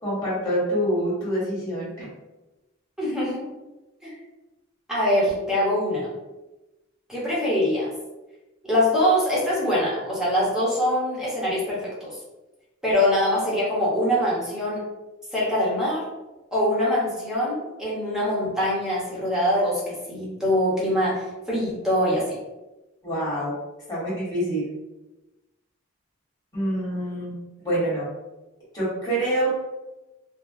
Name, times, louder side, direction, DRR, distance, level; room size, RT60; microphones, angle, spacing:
voice 1, 0.0-2.1 23.0-23.5 23.9-24.6 26.5-28.1 28.7-29.5, right 1 dB, 20° left, -9 dB, 1.5 m, -26 dB
voice 2, 3.0-3.4 4.0-4.1 4.9-6.1 7.1-7.9 8.6-12.2 12.8-14.8 15.3-16.0 16.5-22.4, equal, 5° right, -7 dB, 0.9 m, -23 dB
3.5 x 2.2 x 2.6 m, 1.1 s
head